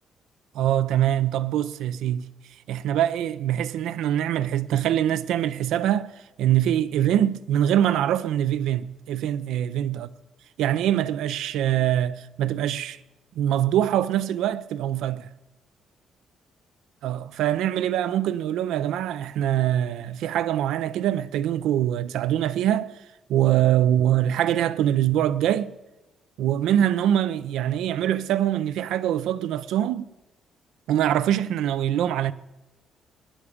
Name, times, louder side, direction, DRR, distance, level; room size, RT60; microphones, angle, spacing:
voice 1, 0.5-2.3 2.7-6.1 6.4-10.1 10.6-13.0 13.4-15.3 17.0-22.9 23.3-25.7 26.4-30.1 30.9-32.3, right 11 dB, 85° right, 0.5 m, -23 dB
22.5 x 9.8 x 5.1 m
cardioid pair, 90°, 0 cm